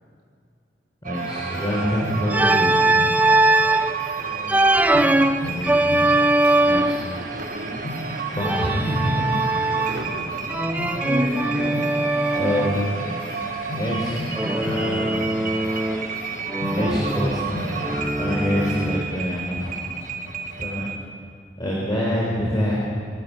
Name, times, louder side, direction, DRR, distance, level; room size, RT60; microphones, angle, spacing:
voice 1, 1.0-2.8 5.4-5.8 6.6-7.0 8.3-9.4 11.0-11.3 12.4-12.8 13.7-14.2 14.5-15.3 16.7-17.8 18.2-19.7 20.6-20.8 21.6-22.7, equal, 25° left, -5 dB, 4.4 m, -26 dB
sound 1, 1.0-21.0, right 6 dB, 50° right, 1.3 m, -32 dB
sound 2, 1.1-20.9, left 1 dB, 85° left, 6.9 m, -35 dB
Organ, 2.3-3.9 4.5-7.1 8.4-10.1 10.5-12.8 14.4-16.2 16.5-19.2, right 2 dB, 10° right, 0.6 m, -21 dB
voice 2, 4.2-4.5 6.6-8.1 9.7-10.6 11.0-11.8 12.7-13.0 16.2-16.6 17.1-17.2 17.5-17.8 20.7-21.1, right 1 dB, 70° right, -3 dB, 5.2 m, -37 dB
25.0 x 13.0 x 8.8 m, 2.3 s
head